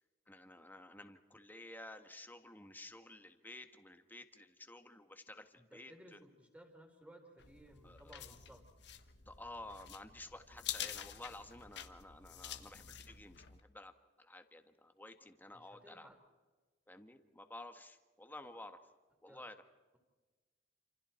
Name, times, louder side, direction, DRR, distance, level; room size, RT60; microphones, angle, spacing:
voice 1, 0.3-6.2 7.8-8.2 9.3-13.9 14.2-16.1 16.9-18.8 19.2-19.5, left 2 dB, 10° left, 7 dB, 1.6 m, -52 dB
voice 2, 5.5-8.6 10.5-10.7 15.5-16.2 19.3-19.5, equal, 10° right, 3 dB, 4.0 m, -59 dB
sound 1, 7.4-13.6, left 10 dB, 65° left, 1.4 m, -48 dB
28.5 x 27.5 x 4.5 m, 1.3 s
head